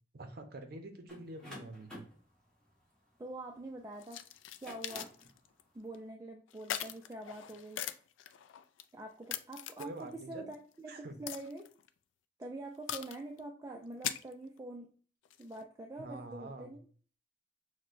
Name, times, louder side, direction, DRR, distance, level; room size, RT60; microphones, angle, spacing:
voice 1, 0.1-2.0 9.8-10.5 10.9-11.2 16.0-16.8, right 2 dB, 55° right, 6 dB, 0.6 m, -46 dB
sound 1, 1.1-3.8 4.4-5.3, left 1 dB, 5° left, 1.2 m, -51 dB
voice 2, 3.2-4.2 4.6-5.1 5.7-7.8 8.9-11.7 12.4-14.9 15.4-16.8, right 2 dB, 15° right, 1 dB, 0.3 m, -45 dB
sound 2, 4.0-5.6 5.9-6.0 6.5-8.8 9.3-10.2 10.5-10.6 11.3-11.9 12.9-13.4 13.8-14.6 15.3-15.6, left 11 dB, 85° left, 0.3 m, -41 dB
6.1 x 2.2 x 2.5 m, 0.42 s
head